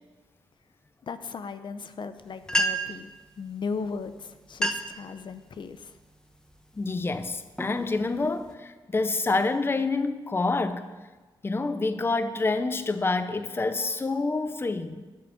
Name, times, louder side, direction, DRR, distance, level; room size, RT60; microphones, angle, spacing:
voice 1, 1.0-6.0, left 5 dB, 60° left, 0.7 m, -37 dB
sound 1, 2.2-2.3 2.5-3.1 4.0-4.1 4.5-5.0 5.5-5.9 6.5-6.8 7.3-8.5, equal, 5° left, 1.1 m, -30 dB
voice 2, 6.7-10.9 11.4-15.0, left 3 dB, 25° left, 0.7 m, -27 dB
12.0 x 7.0 x 8.8 m
wide cardioid pair, 115°, 9 cm